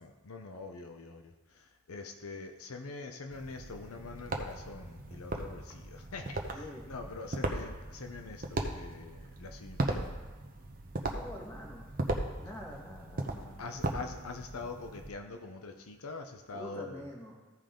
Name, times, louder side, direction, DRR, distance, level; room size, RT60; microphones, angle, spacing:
voice 1, 0.0-1.3 1.9-6.4 6.9-10.0 13.6-17.0, left 3 dB, 75° left, 5 dB, 0.7 m, -44 dB
sound 1, 3.3-15.1, right 2 dB, 40° right, 0.8 m, -38 dB
voice 2, 6.5-6.8 11.1-11.9 12.4-13.6 16.5-17.3, left 1 dB, 10° left, -2 dB, 1.6 m, -46 dB
15.0 x 5.2 x 3.8 m, 1.3 s
head